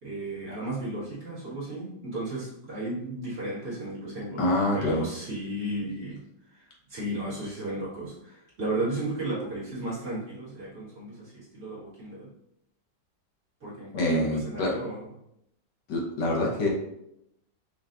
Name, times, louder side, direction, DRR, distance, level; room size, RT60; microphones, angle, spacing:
voice 1, 0.0-6.2 6.5-12.3 13.6-15.1, right 2 dB, 45° right, -9 dB, 1.8 m, -34 dB
voice 2, 4.4-5.0 13.9-14.8 15.9-16.7, left 1 dB, 75° left, -2 dB, 1.4 m, -25 dB
5.5 x 2.3 x 2.5 m, 0.79 s
omnidirectional pair, 1.9 m